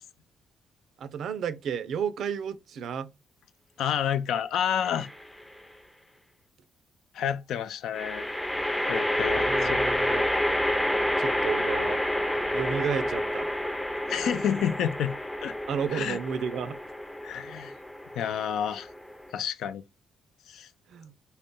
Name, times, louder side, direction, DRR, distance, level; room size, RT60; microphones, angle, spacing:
voice 1, 1.0-3.1 9.3-10.3 11.2-12.0 12.5-13.5 15.7-16.8 20.9-21.1, right 7 dB, 70° right, 0.4 m, -32 dB
voice 2, 3.8-5.1 7.1-8.3 8.9-9.8 14.1-15.1 15.4-15.5 15.9-16.2 17.2-17.7 18.2-18.9 19.3-19.8 20.5-20.7, left 9 dB, 75° left, 0.4 m, -29 dB
sound 1, 4.8-5.4 7.9-19.3, left 1 dB, 5° left, 0.5 m, -29 dB
3.9 x 2.2 x 3.6 m
cardioid pair, 90°, 0 cm